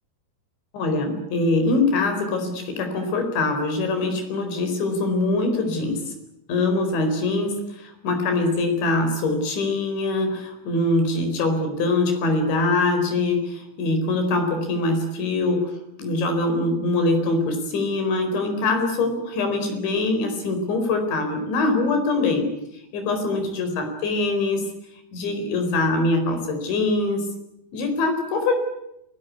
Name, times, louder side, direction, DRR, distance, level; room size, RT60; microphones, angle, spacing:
voice 1, 0.7-6.1 6.5-15.7 16.0-22.5 22.9-24.7 25.1-27.3 27.7-28.6, left 2 dB, 90° left, 6 dB, 6.8 m, -23 dB
29.0 x 20.0 x 8.3 m, 0.81 s
omnidirectional pair, 5.1 m